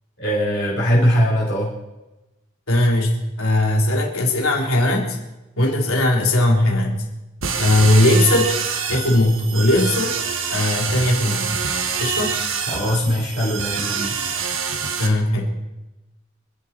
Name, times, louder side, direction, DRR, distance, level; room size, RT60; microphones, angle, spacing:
voice 1, 0.2-1.7 12.7-14.1, equal, 55° left, -6 dB, 4.4 m, -20 dB
voice 2, 2.7-3.1 3.4-5.2 5.6-7.0 7.6-8.5 8.9-10.1 10.5-11.5 12.0-12.4 15.0-15.5, left 1 dB, 85° left, 0 dB, 3.5 m, -18 dB
sound 1, 7.4-15.1, right 6 dB, 70° right, 1.7 m, -26 dB
27.0 x 11.0 x 4.5 m, 1.0 s
head